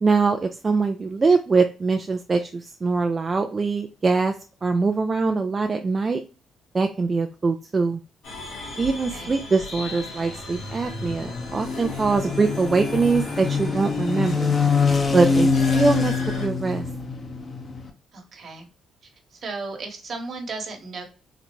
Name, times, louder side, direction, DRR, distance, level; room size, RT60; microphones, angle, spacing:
voice 1, 0.0-4.3 4.6-6.2 6.7-8.0 8.8-14.5 15.1-16.8, right 4 dB, 30° right, 6 dB, 0.3 m, -23 dB
sound 1, 8.2-16.5, left 3 dB, 90° left, 1.8 m, -37 dB
sound 2, 10.3-17.9, left 5 dB, 35° left, 0.7 m, -25 dB
voice 2, 18.1-18.7 19.0-21.0, right 3 dB, 55° right, 3 dB, 1.2 m, -35 dB
3.8 x 2.1 x 2.9 m, 0.35 s
cardioid pair, 90°, 0 cm